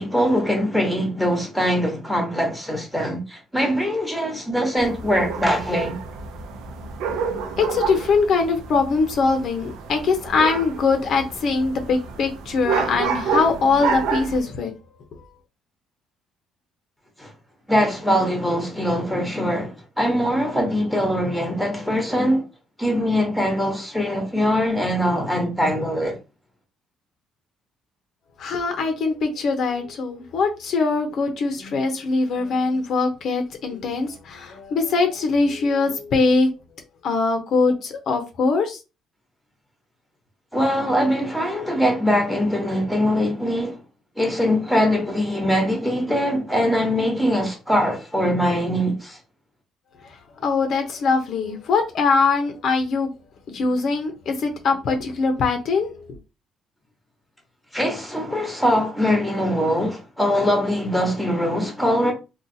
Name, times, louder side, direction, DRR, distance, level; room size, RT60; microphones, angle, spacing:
voice 1, 0.0-6.0 17.2-17.3 17.7-22.4 22.8-26.2 40.5-43.8 44.2-49.2 57.7-62.1, equal, ahead, 1.1 m, -22 dB
sound 1, 4.8-14.4, right 6 dB, 85° right, 0.6 m, -29 dB
voice 2, 7.6-14.7 28.4-36.5 37.0-38.8 50.4-53.1 53.5-56.0, left 4 dB, 50° left, 0.7 m, -22 dB
3.9 x 2.4 x 2.7 m
cardioid pair, 155°, 0 cm